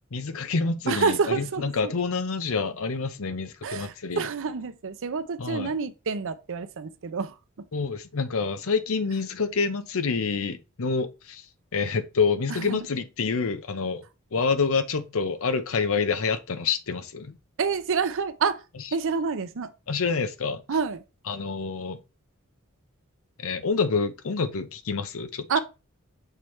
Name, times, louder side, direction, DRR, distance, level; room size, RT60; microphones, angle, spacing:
voice 1, 0.1-4.3 5.4-5.7 7.7-11.5 11.7-14.0 14.3-17.4 19.9-20.6 21.3-22.0 23.4-25.5, left 4 dB, 70° left, 0.7 m, -27 dB
voice 2, 0.9-1.9 3.6-7.4 12.5-12.9 17.6-18.6 18.9-19.7 20.7-21.0 25.5-25.6, right 5 dB, 65° right, 0.6 m, -28 dB
6.7 x 4.5 x 3.2 m
head